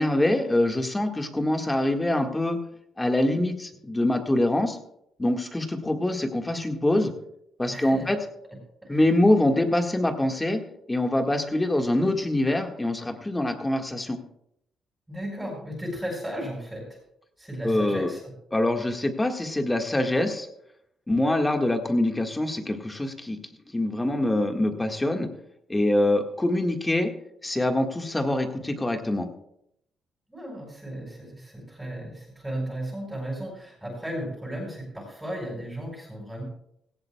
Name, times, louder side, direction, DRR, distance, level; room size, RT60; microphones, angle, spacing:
voice 1, 0.0-2.6 3.0-4.8 5.2-7.1 7.6-8.2 8.9-10.6 10.9-14.2 17.6-18.1 18.5-20.5 21.1-23.4 23.7-25.3 25.7-27.1 27.4-29.3, left 1 dB, 15° left, 4 dB, 1.6 m, -24 dB
voice 2, 7.7-8.1 8.8-9.0 15.1-17.0 17.4-18.3 30.3-36.4, equal, 10° right, -3 dB, 5.0 m, -35 dB
17.5 x 16.0 x 2.3 m, 0.74 s
cardioid pair, 90°, 0 cm